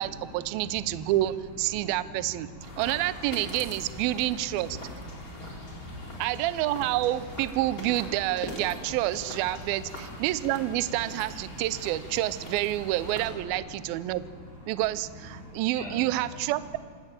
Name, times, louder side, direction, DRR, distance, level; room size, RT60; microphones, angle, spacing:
voice 1, 0.0-2.5 2.8-4.8 6.2-14.2 14.7-16.8, right 15 dB, 80° right, 15 dB, 2.2 m, -28 dB
voice 2, 2.5-2.8 4.0-4.1 5.1-6.4 9.9-10.1 11.5-11.6 15.4-16.0, left 1 dB, 10° right, -3 dB, 8.0 m, -44 dB
sound 1, 2.6-13.3, left 1 dB, 20° left, 3.6 m, -42 dB
26.5 x 11.0 x 9.1 m, 2.2 s
omnidirectional pair, 4.9 m